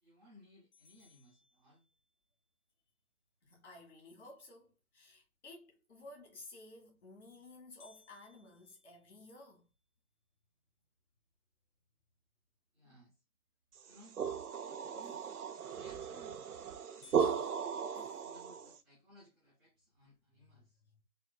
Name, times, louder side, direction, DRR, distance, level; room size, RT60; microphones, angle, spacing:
voice 1, 0.0-1.9 12.7-13.2 13.8-14.2 14.8-15.2 15.7-16.4 18.2-20.8, equal, ahead, 0.6 m, -61 dB
sound 1, 0.7-2.3 7.8-10.0 10.5-10.6 11.1-11.2 11.8-12.1 15.8-16.2 16.6-16.7 17.0-18.8, left 5 dB, 20° left, 1.0 m, -64 dB
voice 2, 3.4-9.7 14.8-15.8 16.7-18.8 20.4-21.0, left 2 dB, 50° left, 2.0 m, -56 dB
sound 2, 13.8-18.8, right 7 dB, 90° right, 0.6 m, -36 dB
4.2 x 3.5 x 2.2 m
figure-of-eight pair, 145°, 44 cm